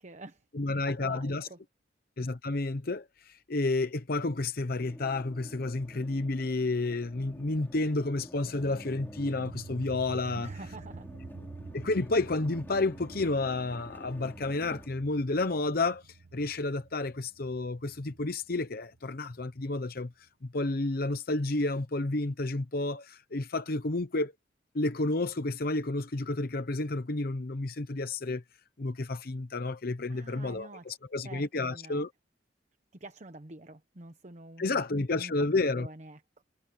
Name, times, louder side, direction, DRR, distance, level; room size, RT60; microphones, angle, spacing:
voice 1, 0.0-0.4 0.9-1.6 10.4-11.1 30.1-31.0 31.2-32.0 32.9-35.5 35.7-36.4, right 2 dB, 40° right, 1.1 m, -47 dB
voice 2, 0.5-1.5 2.2-10.5 11.7-16.0 16.3-20.1 20.4-24.3 24.7-28.4 28.8-32.1 34.6-35.9, left 2 dB, 55° left, 0.8 m, -31 dB
sound 1, 4.8-14.9, equal, 10° left, 4.3 m, -50 dB
sound 2, 8.6-19.7, right 3 dB, 80° right, 0.7 m, -48 dB
head